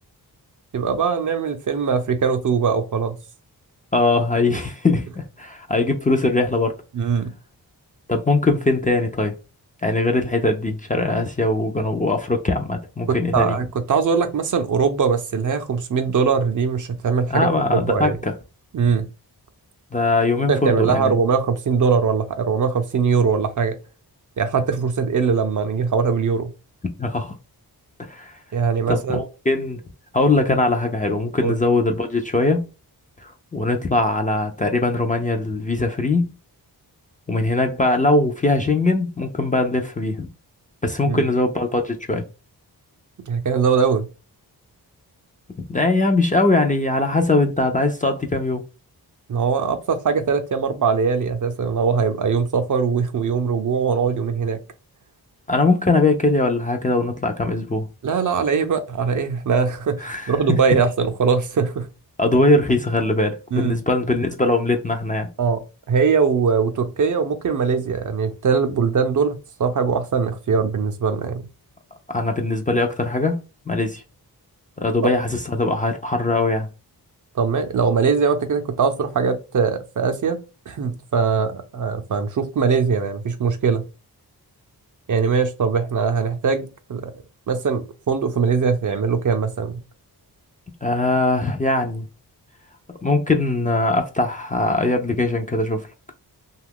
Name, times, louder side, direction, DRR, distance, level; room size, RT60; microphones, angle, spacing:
voice 1, 0.7-3.2 6.9-7.3 13.1-18.2 18.7-19.1 20.5-23.8 24.4-26.5 28.5-29.2 31.4-31.6 41.1-41.3 43.3-44.1 49.3-54.6 58.0-61.9 63.5-63.7 65.4-65.6 65.9-71.5 77.3-80.4 80.7-83.8 85.1-87.1 87.5-89.8, right 5 dB, 50° right, 0.5 m, -21 dB
voice 2, 3.9-6.8 8.1-9.3 9.8-13.6 17.3-18.1 19.9-21.1 27.0-27.4 28.0-28.3 28.9-29.8 30.1-32.6 33.2-36.3 37.3-40.3 40.8-42.2 45.7-48.6 55.5-57.9 60.0-60.6 62.2-65.3 72.1-73.4 73.7-74.0 74.8-76.7 90.8-92.1 93.0-95.9, left 2 dB, 20° left, 0.4 m, -21 dB
2.7 x 2.4 x 3.5 m
wide cardioid pair, 120°, 40 cm